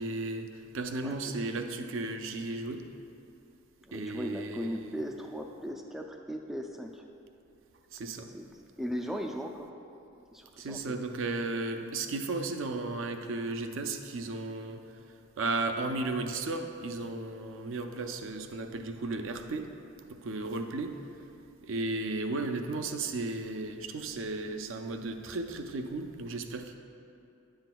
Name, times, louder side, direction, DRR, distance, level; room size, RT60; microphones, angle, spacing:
voice 1, 0.0-2.9 3.9-5.0 7.9-8.3 10.6-15.0 15.4-19.7 20.1-21.0 21.6-26.7, right 3 dB, 65° right, 6 dB, 0.5 m, -35 dB
voice 2, 1.0-1.3 3.8-7.0 8.3-9.7 10.3-11.0, equal, ahead, 2 dB, 0.3 m, -38 dB
10.5 x 7.7 x 2.3 m, 2.7 s
head